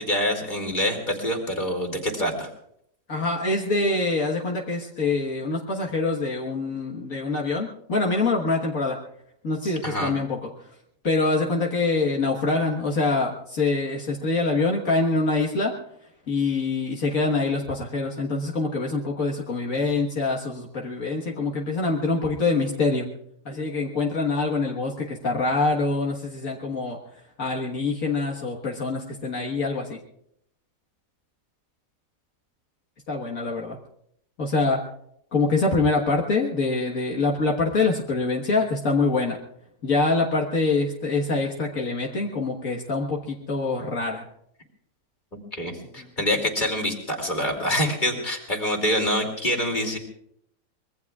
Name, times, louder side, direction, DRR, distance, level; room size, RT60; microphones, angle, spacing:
voice 1, 0.0-2.5 9.8-10.1 45.5-50.0, equal, 35° left, 2 dB, 3.0 m, -26 dB
voice 2, 3.1-9.0 9.4-10.7 11.0-15.7 16.3-23.1 23.5-30.0 33.1-33.8 34.4-34.8 35.3-39.4 39.8-44.2 46.0-46.1, left 3 dB, 70° left, -1 dB, 1.9 m, -25 dB
25.0 x 22.0 x 2.4 m, 0.73 s
omnidirectional pair, 1.5 m